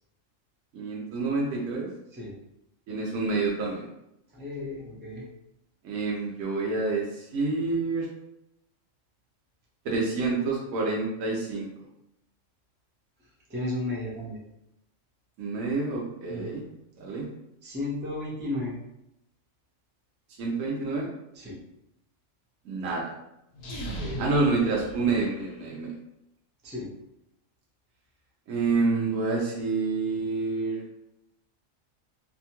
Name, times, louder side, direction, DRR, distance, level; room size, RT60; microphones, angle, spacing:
voice 1, 0.7-1.9 2.9-3.9 5.8-8.1 9.8-11.7 15.4-16.6 17.0-17.3 20.4-21.1 22.7-23.1 24.2-25.9 28.5-30.8, right 3 dB, 80° right, -3 dB, 1.0 m, -28 dB
voice 2, 4.3-5.2 13.5-14.4 16.3-16.6 17.6-18.8 21.4-21.6 23.9-24.2 26.6-26.9, left 2 dB, 15° right, -5 dB, 0.3 m, -34 dB
sound 1, 23.5-25.7, right 1 dB, 65° left, 0.9 m, -38 dB
2.8 x 2.2 x 2.8 m, 0.85 s
omnidirectional pair, 1.3 m